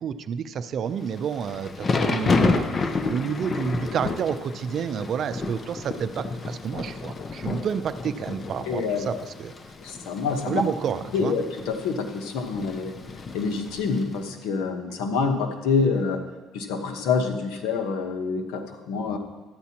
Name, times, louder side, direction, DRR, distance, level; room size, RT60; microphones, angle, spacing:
voice 1, 0.0-2.7 3.1-9.5 10.5-11.4 19.1-19.2, right 7 dB, 50° right, 11 dB, 0.5 m, -30 dB
Thunder / Rain, 1.1-14.2, left 3 dB, 30° left, 0.6 m, -30 dB
voice 2, 8.7-9.3 9.8-10.6 11.1-12.9 13.3-16.2 16.5-19.2, left 4 dB, 80° left, 5 dB, 1.1 m, -26 dB
12.5 x 9.3 x 2.9 m, 1.2 s
cardioid pair, 105°, 0 cm